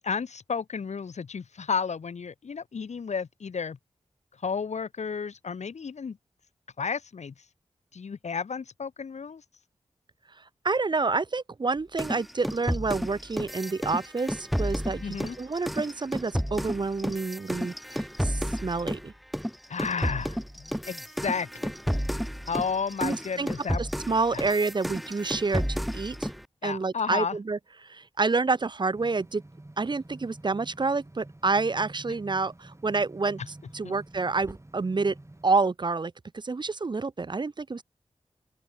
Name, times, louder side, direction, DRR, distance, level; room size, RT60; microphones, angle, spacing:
voice 1, 0.0-3.8 4.4-6.2 6.8-7.3 7.9-9.4 15.0-15.4 19.7-21.7 22.5-23.9 24.3-24.5 26.6-27.4 33.8-33.9, left 5 dB, 75° left, 1.3 m, -32 dB
voice 2, 10.6-19.1 23.0-23.5 23.8-26.3 26.6-29.4 29.8-33.4 33.7-35.1 35.4-37.8, right 3 dB, 40° right, 0.6 m, -28 dB
sound 1, 12.0-19.1 19.3-26.4, equal, ahead, 3.1 m, -32 dB
sound 2, 28.9-35.5, right 1 dB, 25° right, 6.3 m, -48 dB
open air
cardioid pair, 50°, 12 cm